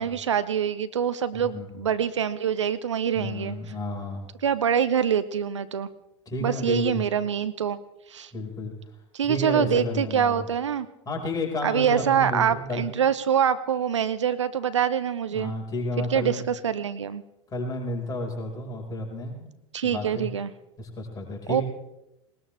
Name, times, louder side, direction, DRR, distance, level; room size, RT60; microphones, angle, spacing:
voice 1, 0.0-3.6 4.4-5.9 6.4-7.8 8.1-8.3 9.1-10.9 11.6-15.5 16.0-17.2 19.7-20.5 21.5-21.6, right 8 dB, 70° right, 13 dB, 0.7 m, -25 dB
voice 2, 1.3-1.8 3.1-4.2 6.3-7.0 8.3-8.7 9.2-10.4 11.0-12.9 15.3-16.5 17.5-19.5 19.8-20.3 20.8-21.6, left 1 dB, 25° left, 1 dB, 4.9 m, -31 dB
20.0 x 20.0 x 3.4 m, 0.90 s
figure-of-eight pair, 75°, 16 cm